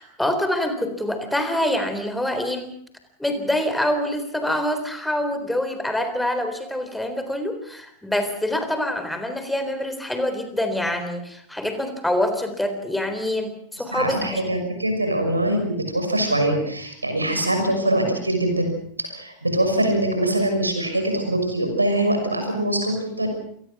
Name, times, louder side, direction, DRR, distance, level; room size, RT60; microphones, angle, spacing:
voice 1, 0.0-2.7 3.2-14.6, left 1 dB, 5° left, 8 dB, 3.8 m, -25 dB
voice 2, 13.9-23.3, right 1 dB, 85° right, 5 dB, 6.2 m, -23 dB
27.5 x 19.0 x 6.1 m, 0.68 s
figure-of-eight pair, 90°, 0 cm